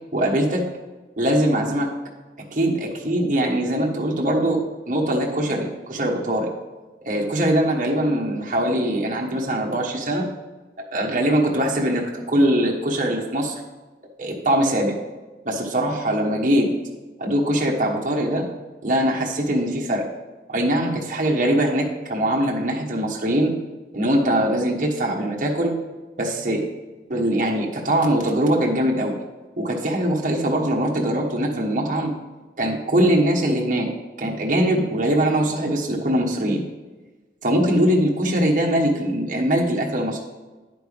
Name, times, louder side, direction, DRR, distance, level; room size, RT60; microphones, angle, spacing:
voice 1, 0.1-0.6 1.2-1.9 2.5-4.6 4.9-6.5 7.0-10.2 10.9-13.6 14.2-14.9 15.4-16.7 17.2-18.5 18.8-20.1 20.5-23.5 23.9-25.7 26.2-26.6 27.1-29.1 29.6-32.1 32.6-33.9 34.2-36.6 37.4-40.2, right 1 dB, 45° right, -1 dB, 1.3 m, -22 dB
9.9 x 9.1 x 3.5 m, 1.2 s
head